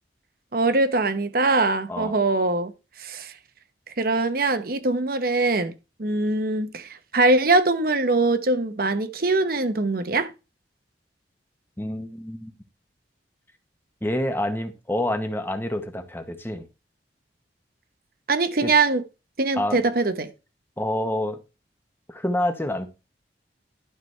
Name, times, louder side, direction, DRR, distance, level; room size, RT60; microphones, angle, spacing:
voice 1, 0.5-2.7 3.0-3.3 4.0-5.7 6.0-10.3 18.3-19.0 19.4-20.3, right 3 dB, 55° right, 1.0 m, -22 dB
voice 2, 11.8-12.5 14.0-16.7 18.6-18.7 19.6-19.8 20.8-21.4 22.1-22.9, left 1 dB, 10° left, 1.1 m, -27 dB
12.0 x 6.0 x 3.3 m
head